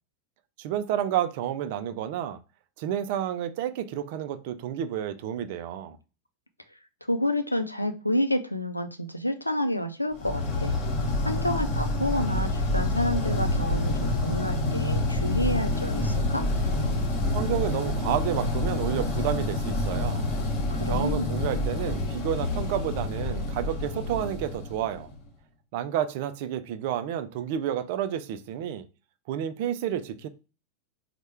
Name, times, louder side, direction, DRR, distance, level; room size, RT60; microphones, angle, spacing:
voice 1, 0.6-2.4 2.8-6.0 17.3-20.2 20.9-25.1 25.7-28.9 29.3-30.3, right 10 dB, 50° right, 0.4 m, -30 dB
voice 2, 7.1-10.7 11.2-16.5 20.7-21.3, left 1 dB, 85° left, 0.4 m, -29 dB
sound 1, 10.2-25.2, left 2 dB, 40° left, 1.0 m, -27 dB
4.2 x 2.2 x 3.3 m
figure-of-eight pair, 90°, 0 cm